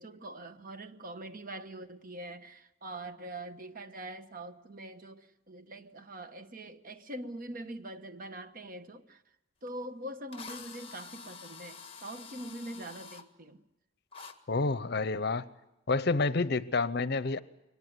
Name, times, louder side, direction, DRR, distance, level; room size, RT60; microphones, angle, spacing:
voice 1, 0.0-9.2 9.6-13.6, right 1 dB, 50° right, 1.2 m, -43 dB
Drill, 9.7-9.8 10.3-13.2 14.1-14.3, left 5 dB, 30° left, 1.7 m, -47 dB
voice 2, 14.5-15.5 15.9-17.4, left 3 dB, 60° left, 0.8 m, -29 dB
23.0 x 19.0 x 9.4 m
head